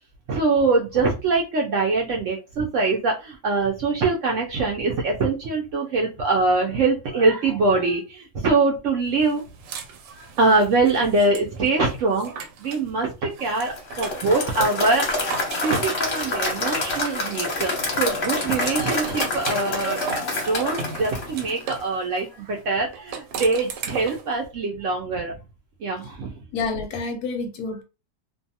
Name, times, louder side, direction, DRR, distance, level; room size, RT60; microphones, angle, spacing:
voice 1, 0.3-9.4 10.2-15.3 15.6-20.0 20.3-25.4 25.8-26.3, right 3 dB, 65° right, 0.7 m, -23 dB
sound 1, 9.2-12.9 13.3-17.5 17.9-21.9 22.9-24.3, right 6 dB, 90° right, 1.2 m, -37 dB
Applause / Crowd, 13.8-21.9, left 2 dB, 45° left, 0.8 m, -27 dB
voice 2, 26.5-27.8, left 4 dB, 75° left, 1.0 m, -28 dB
2.6 x 2.3 x 2.7 m
omnidirectional pair, 1.8 m